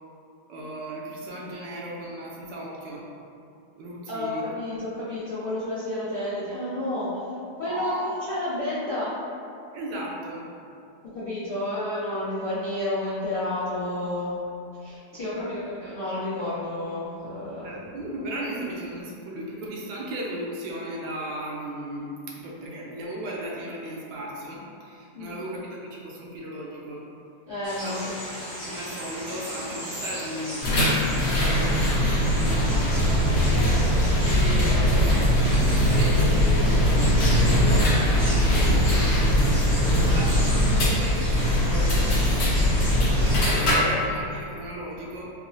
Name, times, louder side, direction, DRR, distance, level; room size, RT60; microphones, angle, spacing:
voice 1, 0.5-3.0 3.8-4.5 7.7-8.1 9.7-10.5 15.1-15.6 17.6-27.1 27.8-28.0 28.6-45.3, right 1 dB, 75° right, -3 dB, 1.2 m, -36 dB
voice 2, 4.1-7.3 7.5-9.2 11.1-14.4 14.8-17.7 25.1-25.4 27.5-28.0, left 1 dB, 75° left, -13 dB, 0.4 m, -30 dB
sound 1, 27.6-43.4, equal, 40° right, 0.5 m, -36 dB
sound 2, 30.6-43.7, equal, 60° left, 0.9 m, -21 dB
4.8 x 2.0 x 2.6 m, 2.6 s
omnidirectional pair, 2.1 m